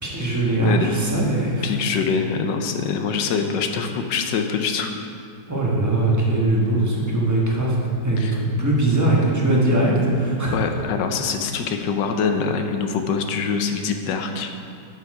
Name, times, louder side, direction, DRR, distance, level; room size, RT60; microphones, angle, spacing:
voice 1, 0.0-1.7 5.5-7.7 8.0-10.6, right 2 dB, 10° right, -4 dB, 1.0 m, -20 dB
voice 2, 1.6-4.9 8.2-8.4 10.5-14.5, left 5 dB, 85° left, 5 dB, 1.3 m, -24 dB
6.9 x 6.8 x 4.8 m, 2.5 s
omnidirectional pair, 1.9 m